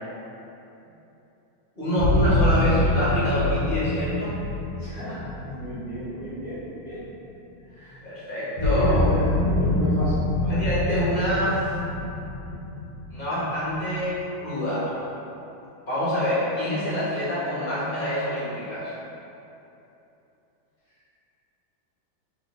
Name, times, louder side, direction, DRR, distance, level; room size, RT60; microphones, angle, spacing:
voice 1, 1.8-4.4 8.0-9.0 10.4-11.6 13.1-14.9 15.8-18.9, equal, 35° left, -10 dB, 1.0 m, -26 dB
sound 1, 2.0-6.9 8.6-14.2, left 1 dB, 70° left, 1.0 m, -25 dB
voice 2, 4.8-7.1 7.6-8.1 8.6-10.2, equal, 20° right, -14 dB, 1.1 m, -32 dB
3.9 x 3.2 x 3.5 m, 2.9 s
omnidirectional pair, 2.2 m